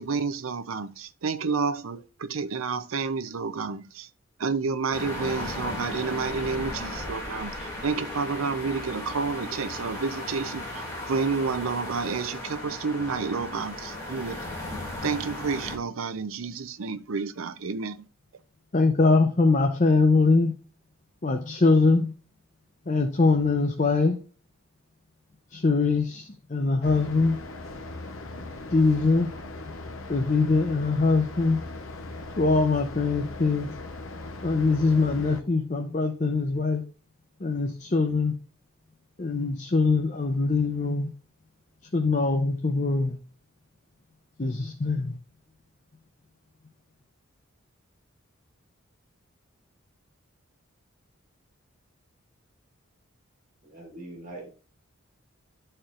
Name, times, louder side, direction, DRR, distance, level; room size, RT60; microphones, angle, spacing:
voice 1, 0.0-4.1 4.4-14.4 15.0-18.1, right 4 dB, 75° right, 0.6 m, -30 dB
sound 1, 4.9-15.8, left 1 dB, 15° left, 2.3 m, -36 dB
voice 2, 18.7-20.5 21.2-22.1 22.9-24.2 25.5-27.4 28.7-29.3 30.1-31.6 32.4-33.7 34.4-36.8 37.4-38.3 39.2-41.1 41.9-43.2 44.4-45.2, left 3 dB, 35° left, 0.6 m, -23 dB
sound 2, 26.8-35.4, left 2 dB, 70° left, 0.9 m, -39 dB
voice 3, 53.6-54.5, right 2 dB, 40° right, 1.8 m, -42 dB
12.5 x 4.4 x 2.5 m
head